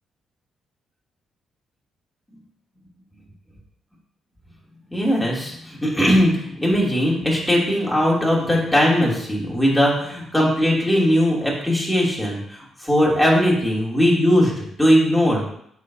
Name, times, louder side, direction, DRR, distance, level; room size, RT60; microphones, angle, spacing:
voice 1, 4.9-15.4, equal, ahead, -5 dB, 2.8 m, -19 dB
8.0 x 6.2 x 2.8 m, 0.70 s
cardioid pair, 90°, 0 cm